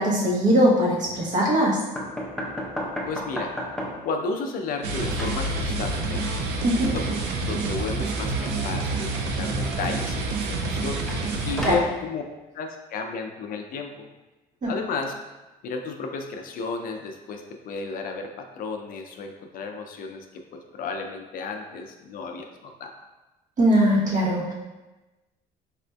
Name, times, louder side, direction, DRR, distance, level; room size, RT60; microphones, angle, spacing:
voice 1, 0.0-1.8 6.6-6.9 11.6-11.8 14.6-14.8 23.6-24.5, equal, 45° right, -4 dB, 1.0 m, -21 dB
sound 1, 2.0-4.2 4.5-5.5 11.1-12.0, equal, 5° left, 0.5 m, -33 dB
voice 2, 3.1-3.5 4.0-6.3 6.9-7.0 7.3-11.1 11.5-12.2 12.5-14.1 14.6-15.1 15.6-22.9, left 4 dB, 55° left, 4 dB, 0.4 m, -33 dB
sound 2, 4.8-11.7, right 3 dB, 85° right, 0.5 m, -28 dB
4.2 x 2.5 x 2.2 m, 1.1 s
cardioid pair, 110°, 17 cm